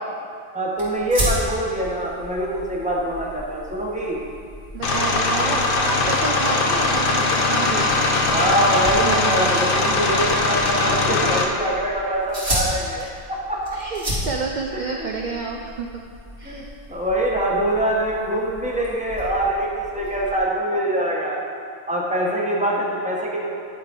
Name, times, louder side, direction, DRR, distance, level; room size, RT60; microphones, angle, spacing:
voice 1, 0.5-4.2 8.3-13.8 14.8-15.2 16.4-21.4 21.9-23.6, right 1 dB, 5° right, -3 dB, 1.2 m, -24 dB
sound 1, 0.8-20.4, equal, 75° right, 2.6 m, -34 dB
voice 2, 4.7-7.9 9.0-9.4 13.7-16.0 16.4-16.7, right 4 dB, 55° right, 1 dB, 0.6 m, -29 dB
sound 2, 4.8-11.4, left 2 dB, 55° left, 1.0 m, -20 dB
10.5 x 4.9 x 5.2 m, 2.3 s
omnidirectional pair, 1.1 m